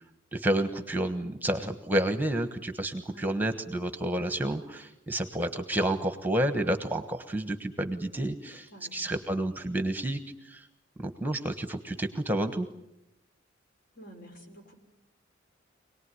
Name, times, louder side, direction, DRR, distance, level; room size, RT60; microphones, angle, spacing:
voice 1, 0.3-10.6 11.0-12.7, right 1 dB, 10° right, 9 dB, 1.2 m, -30 dB
voice 2, 8.7-9.1 14.0-14.7, right 1 dB, 50° left, 3 dB, 5.1 m, -50 dB
25.5 x 19.0 x 9.7 m, 0.86 s
head